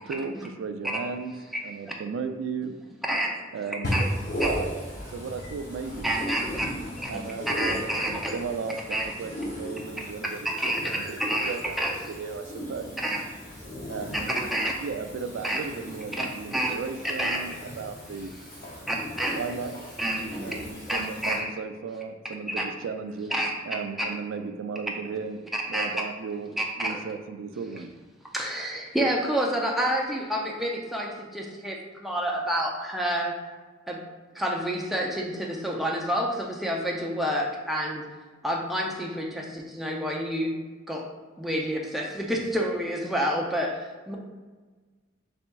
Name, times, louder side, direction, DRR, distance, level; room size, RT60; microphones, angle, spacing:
voice 1, 0.1-1.3 1.6-2.7 3.5-4.0 4.4-4.7 5.1-6.2 7.1-7.8 8.0-10.5 10.8-12.9 13.9-14.3 14.8-18.3 19.3-19.7 20.4-23.3 23.7-25.4 25.7-27.9, right 5 dB, 80° right, 8 dB, 0.3 m, -35 dB
voice 2, 3.1-3.4 3.9-4.0 6.0-6.7 7.1-7.3 7.6-8.4 8.9-9.1 10.4-11.9 13.0-13.2 14.1-14.7 15.4-15.6 16.2-16.3 16.5-16.7 17.0-17.5 18.9-19.4 20.0-20.5 20.9-21.5 22.6-22.7 23.3-23.5 24.0-24.1 25.5-26.0 26.6-27.0 28.3-33.3 33.9-34.0 34.3-38.1 38.4-40.6 40.9-41.1 41.4-44.2, equal, ahead, -2 dB, 0.4 m, -28 dB
voice 3, 3.8-21.4, equal, 45° left, -7 dB, 0.7 m, -37 dB
4.2 x 3.4 x 2.2 m, 1.4 s
head